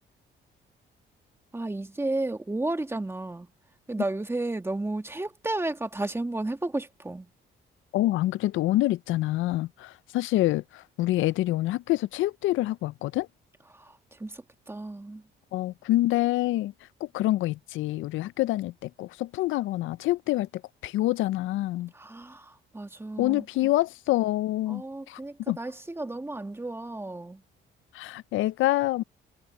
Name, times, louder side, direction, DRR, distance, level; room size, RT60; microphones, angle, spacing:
voice 1, 1.5-3.5 3.9-7.3 13.7-15.2 21.9-23.4 24.7-27.4, right 2 dB, 10° right, 1.8 m, -33 dB
voice 2, 7.9-13.3 15.5-16.7 17.0-20.5 20.8-21.9 23.2-24.8 25.1-25.2 25.5-25.6 27.9-29.0, left 16 dB, 85° left, 0.5 m, -26 dB
cardioid pair, 90°, 20 cm